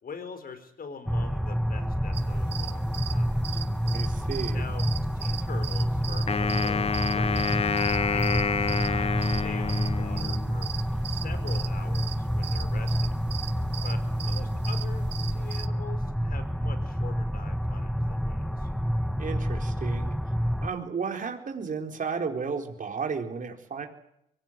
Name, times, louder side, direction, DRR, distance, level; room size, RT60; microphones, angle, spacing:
voice 1, 0.0-3.6 4.5-4.8 5.1-10.7 11.0-13.2 13.8-18.7, left 5 dB, 50° left, 11 dB, 5.0 m, -44 dB
sound 1, 1.1-20.7, equal, ahead, 1.0 m, -28 dB
sound 2, 2.1-15.7, right 11 dB, 60° right, 1.3 m, -40 dB
voice 2, 3.9-4.6 19.2-20.2 20.6-23.9, right 5 dB, 40° right, 3 dB, 4.3 m, -33 dB
Wind instrument woodwind instrument, 6.3-10.6, left 5 dB, 30° left, 0.9 m, -28 dB
23.5 x 17.5 x 9.2 m, 0.76 s
cardioid pair, 90°, 20 cm